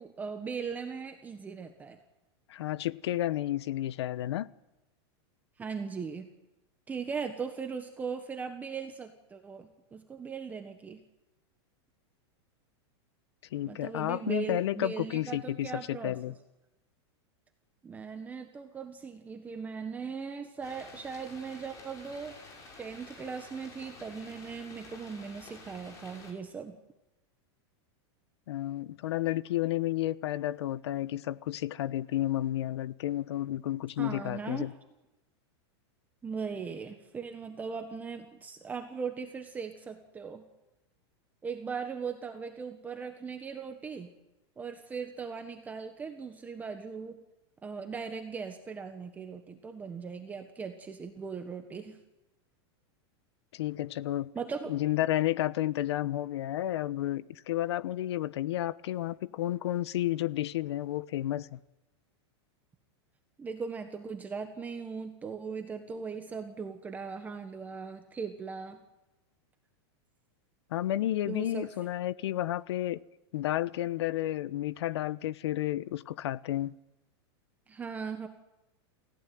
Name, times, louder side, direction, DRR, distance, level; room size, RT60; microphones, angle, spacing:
voice 1, 0.0-2.0 5.6-6.3 6.9-11.0 13.7-16.2 17.8-22.4 22.8-26.8 34.0-34.6 36.2-40.4 41.4-44.1 44.6-47.2 47.6-52.0 54.3-54.7 63.4-68.8 71.3-71.7 77.7-78.3, right 5 dB, 10° right, 1.4 m, -39 dB
voice 2, 2.5-4.5 13.5-16.3 28.5-34.7 53.5-54.3 54.7-61.6 70.7-73.0 73.3-76.7, left 13 dB, 75° left, 1.0 m, -31 dB
sound 1, 20.6-26.3, left 3 dB, 25° left, 5.9 m, -50 dB
29.0 x 16.0 x 9.4 m
supercardioid pair, 165°, 14 cm